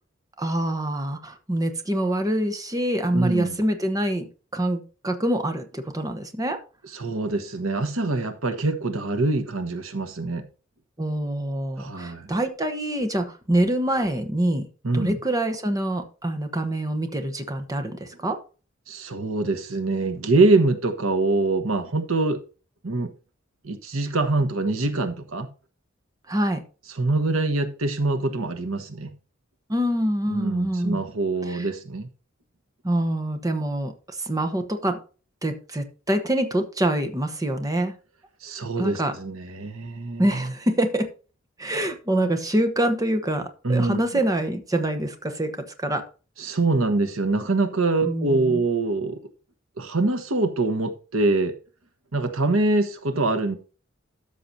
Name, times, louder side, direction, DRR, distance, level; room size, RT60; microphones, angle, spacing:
voice 1, 0.4-4.3 4.5-6.6 11.0-14.7 14.9-18.4 26.3-26.6 29.7-31.0 31.4-31.7 32.8-35.0 35.4-37.9 38.8-39.1 40.2-41.1 41.6-46.1 48.0-48.6, right 1 dB, 15° right, 1.0 m, -25 dB
voice 2, 3.1-3.6 6.9-10.5 11.8-12.3 14.8-15.2 18.9-22.4 22.8-23.1 23.6-25.5 27.0-29.1 30.3-32.1 38.4-40.5 43.6-44.0 46.4-49.2 49.8-51.5 52.1-53.6, right 2 dB, 90° right, 1.3 m, -24 dB
13.0 x 6.7 x 2.8 m
head